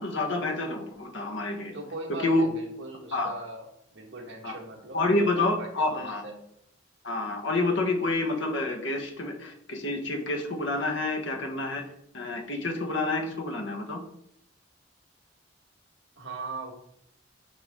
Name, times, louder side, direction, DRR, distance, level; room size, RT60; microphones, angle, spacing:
voice 1, 0.0-1.7 2.2-2.4 3.1-3.3 4.4-4.5 4.9-6.2 7.0-11.8 12.1-14.0, left 2 dB, 65° left, 3 dB, 1.3 m, -28 dB
voice 2, 1.7-6.4 16.2-16.7, right 2 dB, 65° right, 1 dB, 1.6 m, -40 dB
7.8 x 5.6 x 3.6 m, 0.75 s
head